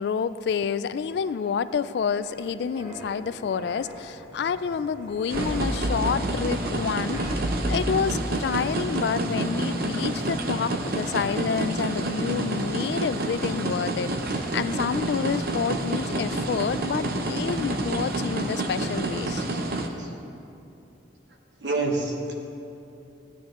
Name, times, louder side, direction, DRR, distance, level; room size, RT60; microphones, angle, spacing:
voice 1, 0.0-19.5, left 6 dB, 65° left, 15 dB, 0.3 m, -28 dB
sound 1, 0.7-12.9 13.3-13.5, equal, 40° right, 2.8 m, -37 dB
sound 2, 5.3-19.9, right 2 dB, 55° right, 0.7 m, -29 dB
voice 2, 21.6-22.3, right 3 dB, 80° right, 1 dB, 1.4 m, -27 dB
15.5 x 9.4 x 3.1 m, 2.8 s
head